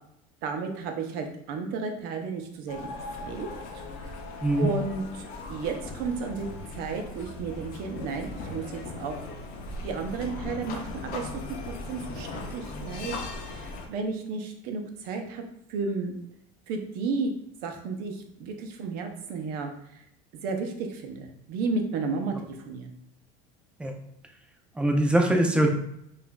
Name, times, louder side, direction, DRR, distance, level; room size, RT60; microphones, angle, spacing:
voice 1, 0.4-2.8 3.2-3.5 3.7-4.2 4.6-6.5 6.8-9.3 9.8-13.2 13.5-15.4 15.7-16.1 16.7-17.3 17.6-20.0 20.4-23.0, right 4 dB, 60° right, 4 dB, 0.6 m, -33 dB
sound 1, 2.7-13.9, left 2 dB, 50° left, 0.6 m, -38 dB
voice 2, 24.8-25.7, right 1 dB, 5° right, 2 dB, 0.4 m, -22 dB
4.8 x 2.5 x 2.2 m, 0.75 s
cardioid pair, 145°, 18 cm